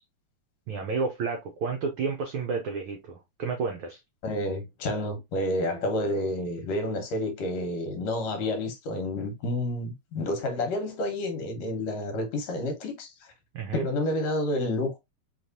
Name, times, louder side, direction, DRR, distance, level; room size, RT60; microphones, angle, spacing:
voice 1, 0.7-4.0 13.5-13.9, right 5 dB, 90° right, 1.1 m, -31 dB
voice 2, 4.2-13.3 13.7-15.0, left 1 dB, 70° left, 2.2 m, -29 dB
5.0 x 3.1 x 2.6 m
omnidirectional pair, 3.3 m